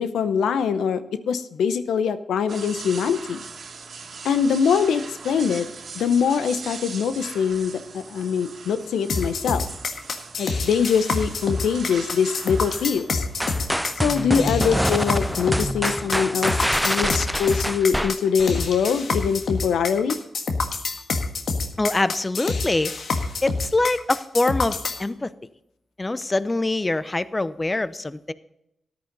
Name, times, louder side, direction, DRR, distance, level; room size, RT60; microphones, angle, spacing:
voice 1, 0.0-3.4 4.2-5.7 5.9-9.7 10.4-13.3 14.0-16.6 16.8-20.2, left 6 dB, 85° left, 12 dB, 0.7 m, -23 dB
sound 1, 2.5-17.8, right 5 dB, 65° right, 1.9 m, -41 dB
sound 2, 9.1-25.0, left 4 dB, 70° left, 1.6 m, -27 dB
sound 3, 13.4-18.7, equal, ahead, 0.3 m, -25 dB
voice 2, 21.8-23.0 23.4-25.3 26.0-28.3, left 2 dB, 25° left, 15 dB, 0.7 m, -24 dB
13.5 x 10.5 x 4.0 m, 0.84 s
supercardioid pair, 50°, 0 cm